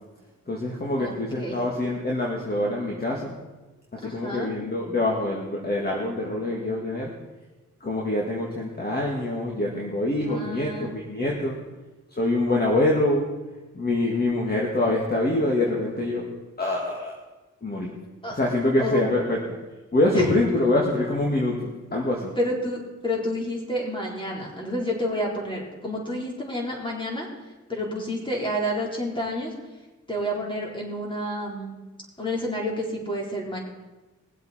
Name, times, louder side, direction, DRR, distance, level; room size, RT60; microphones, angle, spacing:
voice 1, 0.5-3.3 3.9-7.1 7.8-11.6 12.1-13.3 13.7-16.3 16.6-17.1 17.6-18.0 18.3-19.4 19.9-22.3, left 2 dB, 30° left, -2 dB, 2.2 m, -25 dB
voice 2, 1.0-1.6 4.0-4.5 10.2-11.0 18.2-18.3 18.8-19.0 20.1-20.3 22.4-27.3 27.7-29.5 30.1-31.8 32.2-33.6, equal, 15° left, -2 dB, 4.2 m, -29 dB
22.0 x 7.9 x 4.5 m, 1.2 s
cardioid pair, 80°, 31 cm